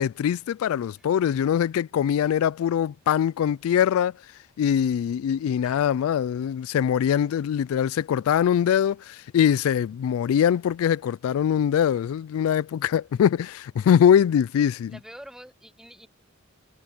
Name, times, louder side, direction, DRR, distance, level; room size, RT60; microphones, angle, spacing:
voice 1, 0.0-4.1 4.6-15.0, left 9 dB, 90° left, 0.3 m, -22 dB
voice 2, 14.9-16.1, equal, 5° right, 0.8 m, -46 dB
head